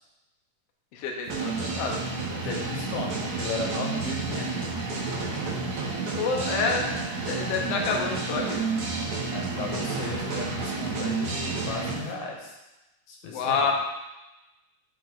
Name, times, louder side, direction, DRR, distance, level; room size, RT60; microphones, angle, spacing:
voice 1, 0.9-2.4 6.1-6.9 7.3-8.7 13.3-13.7, left 5 dB, 70° left, 1 dB, 1.6 m, -28 dB
sound 1, 1.3-12.0, right 4 dB, 85° right, 0.8 m, -30 dB
voice 2, 2.4-4.8 9.3-12.5 13.1-13.7, left 3 dB, 85° left, -1 dB, 2.5 m, -35 dB
8.7 x 2.9 x 3.9 m, 0.99 s
omnidirectional pair, 3.3 m